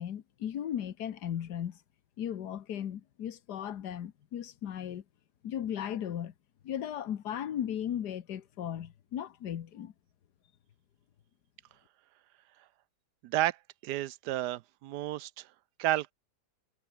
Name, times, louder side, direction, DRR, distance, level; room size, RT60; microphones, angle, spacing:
voice 1, 0.0-1.8 2.2-5.0 5.4-6.3 6.6-9.9, left 10 dB, 75° left, 1.7 m, -36 dB
voice 2, 13.2-13.6 13.8-15.5 15.8-16.1, right 14 dB, 80° right, 1.1 m, -31 dB
omnidirectional pair, 1.8 m